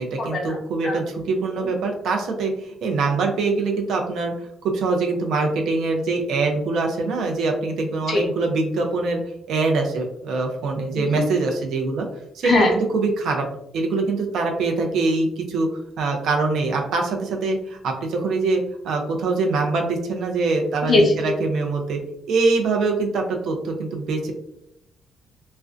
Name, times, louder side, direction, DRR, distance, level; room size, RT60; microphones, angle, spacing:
voice 1, 0.0-9.2 9.5-12.1 12.3-13.4 13.7-15.7 16.0-22.0 22.3-24.3, right 3 dB, 75° right, 2 dB, 0.5 m, -23 dB
voice 2, 10.9-11.3 12.4-12.7 20.9-21.2, left 2 dB, 45° left, 0 dB, 0.6 m, -20 dB
2.4 x 2.1 x 2.4 m, 0.76 s
cardioid pair, 90°, 0 cm